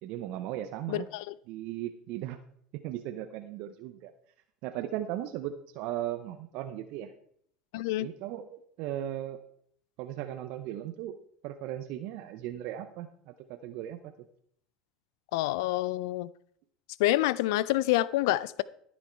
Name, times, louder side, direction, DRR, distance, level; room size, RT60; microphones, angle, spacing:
voice 1, 0.0-1.1 1.5-2.4 2.7-4.1 4.6-7.1 8.0-9.4 10.0-11.2 11.4-14.1, right 12 dB, 65° right, 0.7 m, -37 dB
voice 2, 0.9-1.3 7.7-8.1 15.3-16.3 17.0-18.6, left 16 dB, 70° left, 0.4 m, -27 dB
14.0 x 6.3 x 4.5 m
hypercardioid pair, 85°, 2 cm